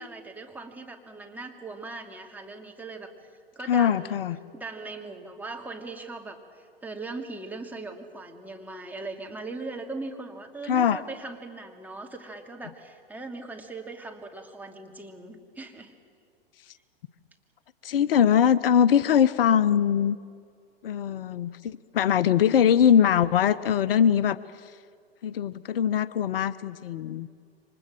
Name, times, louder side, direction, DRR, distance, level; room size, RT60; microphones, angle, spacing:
voice 1, 0.0-3.1 3.5-4.2 4.5-15.9, right 3 dB, 5° right, 2 dB, 2.8 m, -39 dB
voice 2, 3.7-4.4 10.7-11.0 17.8-20.2 20.8-24.4 24.6-24.7 25.2-27.3, left 8 dB, 65° left, 17 dB, 0.8 m, -22 dB
29.0 x 25.0 x 7.6 m, 2.2 s
hypercardioid pair, 110°, 31 cm